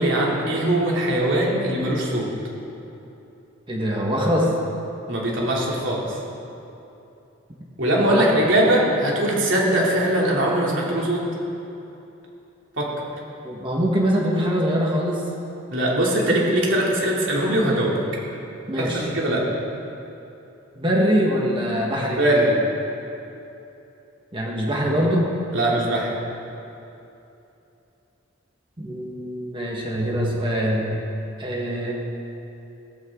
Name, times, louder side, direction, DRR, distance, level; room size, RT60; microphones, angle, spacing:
voice 1, 0.0-2.3 5.1-6.2 7.8-11.2 12.8-12.9 15.7-18.0 18.8-19.4 22.2-22.6 25.5-26.1, right 1 dB, 65° right, -4 dB, 3.1 m, -21 dB
voice 2, 3.7-4.5 8.1-8.3 13.4-15.2 18.7-19.1 20.8-22.2 24.3-25.3 28.8-30.9 31.4-31.9, equal, 25° right, -3 dB, 1.7 m, -23 dB
17.0 x 15.0 x 3.9 m, 2.9 s
head